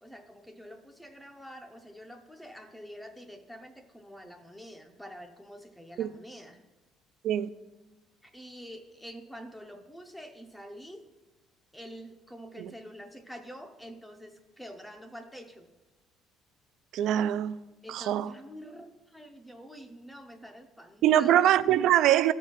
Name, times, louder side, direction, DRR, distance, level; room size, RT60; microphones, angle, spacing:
voice 1, 0.0-6.6 8.2-11.1 11.7-15.7 17.8-21.6, equal, 5° left, 0.5 m, -47 dB
voice 2, 16.9-17.6 17.9-18.3 21.0-22.3, right 11 dB, 55° right, 0.3 m, -23 dB
13.5 x 4.5 x 5.7 m
cardioid pair, 165°, 0 cm